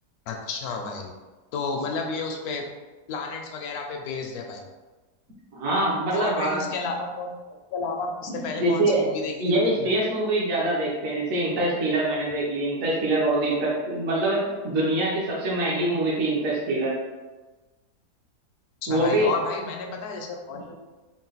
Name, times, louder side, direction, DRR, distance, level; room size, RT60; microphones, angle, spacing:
voice 1, 0.3-1.1 1.5-2.7 3.1-4.6 6.1-9.9 18.8-20.8, left 4 dB, 70° left, 3 dB, 1.0 m, -32 dB
voice 2, 5.5-6.6 8.6-9.0 9.4-16.9 18.9-19.3, right 1 dB, 60° right, -6 dB, 1.3 m, -24 dB
3.8 x 2.4 x 3.9 m, 1.2 s
omnidirectional pair, 1.8 m